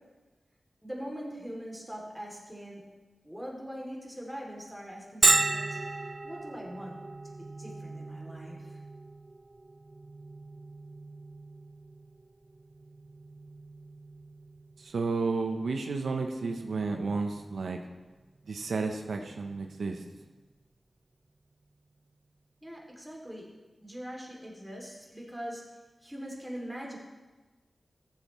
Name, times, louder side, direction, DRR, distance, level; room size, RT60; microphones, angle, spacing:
voice 1, 0.8-2.8 3.2-5.8 6.2-7.0 7.4-8.8 22.6-23.5 23.8-25.6 26.0-27.0, equal, 5° right, -2 dB, 2.6 m, -42 dB
Bell, 5.2-20.7, right 2 dB, 40° right, 0.3 m, -35 dB
voice 2, 14.8-17.8 18.5-20.0, right 4 dB, 90° right, 4 dB, 0.7 m, -32 dB
14.0 x 7.3 x 3.0 m, 1.2 s
cardioid pair, 55°, 0 cm